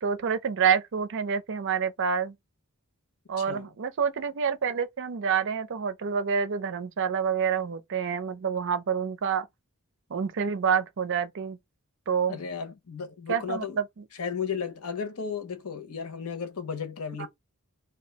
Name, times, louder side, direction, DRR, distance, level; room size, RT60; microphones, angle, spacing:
voice 1, 0.0-2.3 3.3-9.5 10.1-11.6 12.1-12.4 13.3-13.8 17.2-17.3, right 7 dB, 55° right, 0.5 m, -27 dB
voice 2, 3.4-3.7 12.3-13.8 14.2-17.3, left 6 dB, 75° left, 0.8 m, -34 dB
2.7 x 2.3 x 4.0 m
head